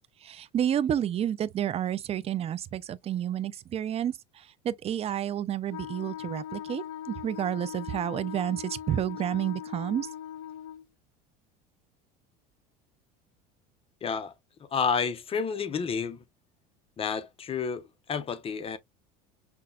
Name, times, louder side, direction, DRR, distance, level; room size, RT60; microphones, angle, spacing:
voice 1, 0.2-10.1, right 10 dB, 30° right, 0.4 m, -30 dB
Wind instrument woodwind instrument, 5.7-10.9, left 10 dB, 70° left, 0.4 m, -40 dB
voice 2, 14.0-14.3 14.7-16.2 17.0-18.8, left 6 dB, 25° left, 0.6 m, -30 dB
5.8 x 2.2 x 2.3 m
supercardioid pair, 105°, 21 cm